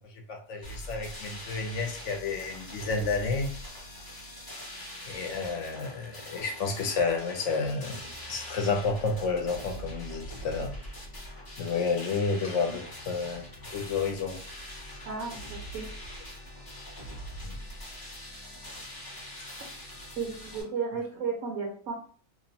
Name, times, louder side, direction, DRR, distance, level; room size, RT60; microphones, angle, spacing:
voice 1, 0.3-3.5 5.1-8.0 8.3-10.7 11.6-13.4 13.7-14.4 17.4-17.6 19.4-19.5, left 4 dB, 65° left, 0.8 m, -30 dB
sound 1, 0.6-20.6, equal, 25° left, 0.5 m, -43 dB
voice 2, 15.1-15.9 20.2-21.9, right 5 dB, 75° right, 1.0 m, -34 dB
2.9 x 2.0 x 2.7 m
omnidirectional pair, 1.5 m